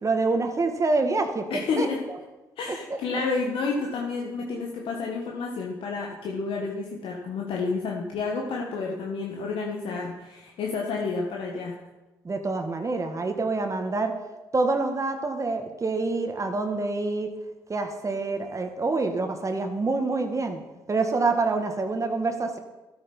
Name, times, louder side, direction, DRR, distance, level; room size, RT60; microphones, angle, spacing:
voice 1, 0.0-1.9 2.9-3.0 12.2-14.1 14.5-17.3 17.7-20.6 20.9-22.6, right 3 dB, 30° right, 6 dB, 1.7 m, -26 dB
voice 2, 1.5-2.0 2.6-11.8, left 4 dB, 65° left, 0 dB, 1.5 m, -30 dB
13.0 x 8.8 x 5.4 m, 1.1 s
hypercardioid pair, 55°, 10 cm